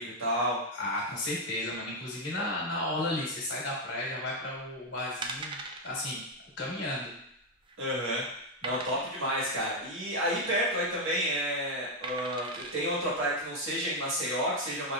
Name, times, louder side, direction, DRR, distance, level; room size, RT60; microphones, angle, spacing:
voice 1, 0.0-0.6 7.8-8.2 8.6-14.9, equal, 80° right, -7 dB, 1.6 m, -30 dB
voice 2, 0.7-5.6 5.8-6.2 6.6-7.1, left 1 dB, 65° left, -5 dB, 1.5 m, -33 dB
sound 1, 4.6-4.7 5.2-5.9 6.3-6.5 6.7-6.8 7.4-7.9 8.6-9.3 10.6-11.0 12.0-12.8 13.4-13.5, right 3 dB, 25° right, 0.3 m, -40 dB
5.3 x 2.9 x 2.4 m, 0.71 s
head